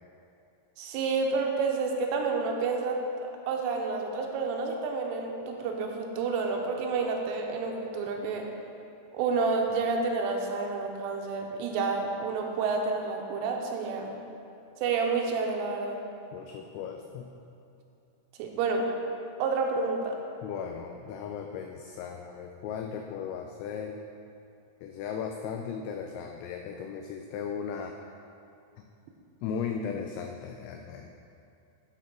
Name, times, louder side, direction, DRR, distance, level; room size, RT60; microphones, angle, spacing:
voice 1, 0.8-3.0 3.5-8.5 9.1-14.1 14.8-16.0 18.4-18.9 19.4-20.2, right 4 dB, 85° right, 2 dB, 3.2 m, -29 dB
voice 2, 16.3-17.3 20.4-24.0 24.8-28.0 29.4-31.2, left 7 dB, 90° left, 3 dB, 2.6 m, -36 dB
11.5 x 4.3 x 6.0 m, 2.6 s
omnidirectional pair, 5.8 m